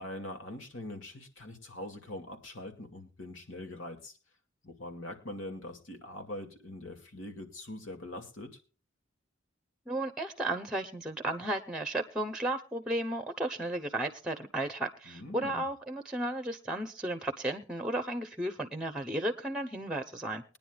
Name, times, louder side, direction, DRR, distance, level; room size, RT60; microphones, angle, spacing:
voice 1, 0.0-4.1 4.6-8.5 15.1-15.6, left 1 dB, 80° left, 5 dB, 2.4 m, -43 dB
voice 2, 9.9-20.4, right 1 dB, 5° right, 8 dB, 0.8 m, -34 dB
21.5 x 10.0 x 2.4 m, 0.36 s
head